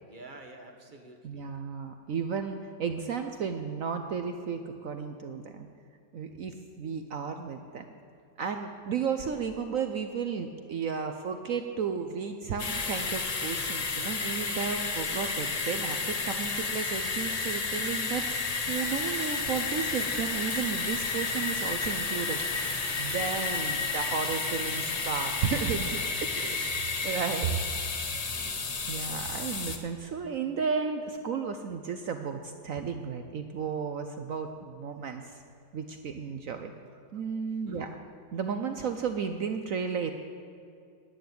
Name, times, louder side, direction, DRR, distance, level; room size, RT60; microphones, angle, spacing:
voice 1, 0.0-1.5 25.5-26.8 28.3-28.8 37.6-38.1, right 1 dB, 35° right, 4 dB, 1.0 m, -49 dB
voice 2, 1.2-5.7 6.1-7.8 8.4-27.6 28.9-35.4 35.7-36.7 37.1-37.9 38.3-40.1, right 6 dB, 65° right, 7 dB, 0.8 m, -33 dB
sound 1, 12.6-29.8, left 4 dB, 75° left, 0.3 m, -32 dB
sound 2, 18.7-26.1, left 3 dB, 45° left, 1.6 m, -43 dB
10.0 x 8.8 x 9.3 m, 2.4 s
omnidirectional pair, 2.0 m